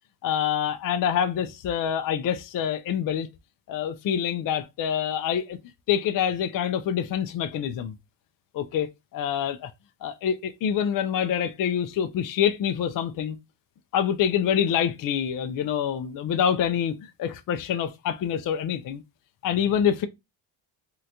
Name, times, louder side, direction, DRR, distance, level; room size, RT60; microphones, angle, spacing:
voice 1, 0.2-3.3 3.7-5.6 5.9-7.9 8.5-8.9 9.1-9.7 10.0-13.4 13.9-19.0 19.4-20.1, left 9 dB, 45° left, 0.4 m, -26 dB
3.7 x 2.2 x 2.8 m
cardioid pair, 85°, 48 cm